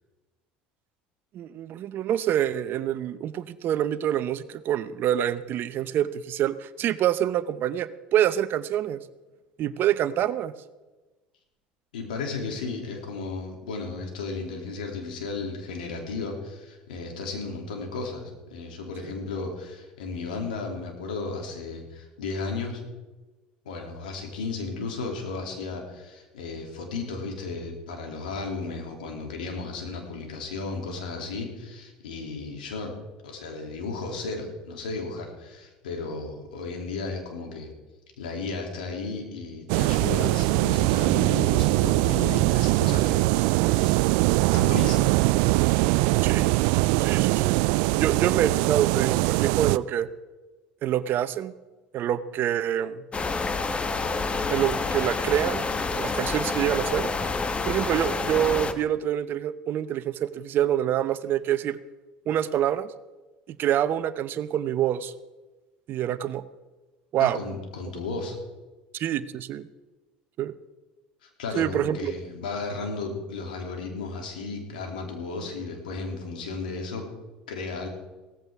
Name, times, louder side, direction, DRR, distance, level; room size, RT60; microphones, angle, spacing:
voice 1, 1.3-9.0 9.6-10.5 19.0-19.1 46.2-46.5 47.0-47.6 48.0-50.1 50.8-51.5 51.9-53.0 54.5-57.1 57.6-61.8 62.3-62.9 63.5-65.1 65.9-66.4 67.1-67.4 68.9-69.7 70.4-70.5 71.6-72.1, right 11 dB, 50° right, 14 dB, 0.8 m, -26 dB
voice 2, 11.9-22.8 23.6-32.9 33.2-37.7 38.2-44.1 44.5-45.2 67.2-68.4 71.4-77.1 77.5-77.9, left 3 dB, 85° left, 2 dB, 2.9 m, -34 dB
sound 1, 39.7-49.8, right 20 dB, 70° right, 0.3 m, -22 dB
sound 2, 53.1-58.7, left 4 dB, 25° left, 1.2 m, -28 dB
17.0 x 14.5 x 3.6 m, 1.2 s
hypercardioid pair, 70°, 4 cm